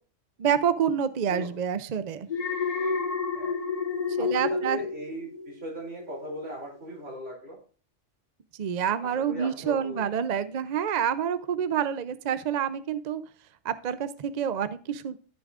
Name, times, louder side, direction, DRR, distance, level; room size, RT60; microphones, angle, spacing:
voice 1, 0.4-2.3 4.2-4.8 8.5-13.2 13.6-15.2, right 8 dB, 50° right, 13 dB, 0.5 m, -28 dB
Alarm, 2.3-5.6 6.0-6.3, left 5 dB, 35° left, 0.9 m, -29 dB
voice 2, 4.2-7.6 9.0-10.0, equal, 75° right, -2 dB, 3.5 m, -38 dB
14.0 x 6.9 x 2.4 m, 0.41 s
omnidirectional pair, 1.2 m